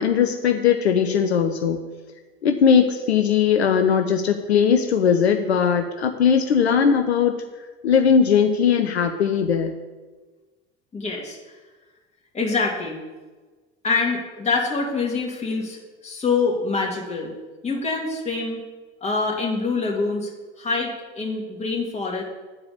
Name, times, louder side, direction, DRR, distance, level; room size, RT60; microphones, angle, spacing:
voice 1, 0.0-1.8 2.4-7.4 7.8-9.7, left 7 dB, 75° left, 5 dB, 0.7 m, -19 dB
voice 2, 10.9-11.4 12.3-13.0 13.8-15.8 16.0-17.3 17.6-18.6 19.0-20.3 20.6-22.2, left 4 dB, 20° left, -1 dB, 2.6 m, -25 dB
9.7 x 4.8 x 6.7 m, 1.3 s
figure-of-eight pair, 75°, 33 cm